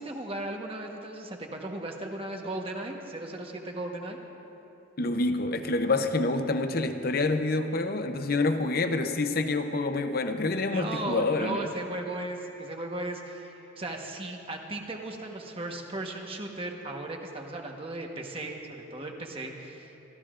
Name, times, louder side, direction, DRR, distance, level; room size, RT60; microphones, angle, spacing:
voice 1, 0.0-4.2 10.5-20.0, right 2 dB, 30° right, 1.2 m, -36 dB
voice 2, 5.0-11.7, left 3 dB, 50° left, 0.7 m, -27 dB
28.5 x 14.0 x 2.5 m
head